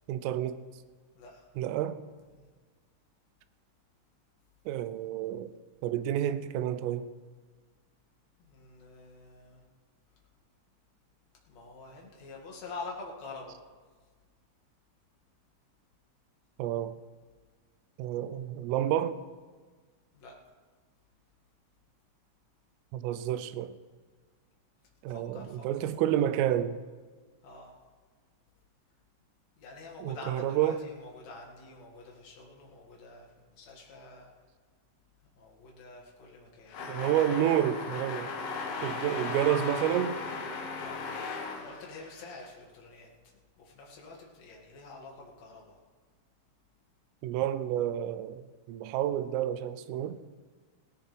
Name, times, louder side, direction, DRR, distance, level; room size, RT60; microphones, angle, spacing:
voice 1, 0.1-0.6 1.6-2.0 4.7-5.5 5.8-7.1 16.6-16.9 18.0-19.2 22.9-23.7 25.0-26.8 30.0-30.8 36.9-38.3 38.8-40.2 47.2-50.2, right 11 dB, 85° right, 3.2 m, -29 dB
voice 2, 1.1-1.5 2.3-2.5 8.4-9.6 11.5-13.6 20.1-20.4 25.1-25.7 27.4-27.8 29.6-34.3 35.4-36.9 38.8-38.9 40.8-41.0 41.5-43.1 43.6-45.8, left 3 dB, 50° left, 2.2 m, -47 dB
sound 1, 36.7-42.5, left 4 dB, 80° left, 4.1 m, -37 dB
17.5 x 17.5 x 3.4 m
omnidirectional pair, 5.8 m